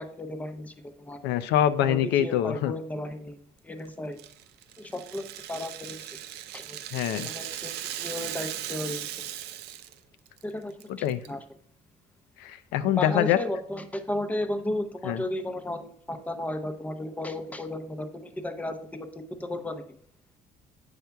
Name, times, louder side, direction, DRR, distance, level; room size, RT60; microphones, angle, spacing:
voice 1, 0.0-1.2 1.8-3.4 3.6-4.2 4.8-6.1 6.5-6.8 7.2-9.1 10.4-10.9 11.3-11.4 13.0-20.0, left 1 dB, 10° left, 7 dB, 0.5 m, -34 dB
voice 2, 1.2-2.7 6.9-7.3 10.9-11.2 12.4-13.4 15.0-15.2, left 11 dB, 85° left, 11 dB, 0.4 m, -25 dB
Rattle (instrument), 4.2-10.0 10.3-10.4 10.8-11.3, right 12 dB, 75° right, 0.4 m, -38 dB
7.9 x 5.6 x 2.3 m, 0.62 s
cardioid pair, 110°, 17 cm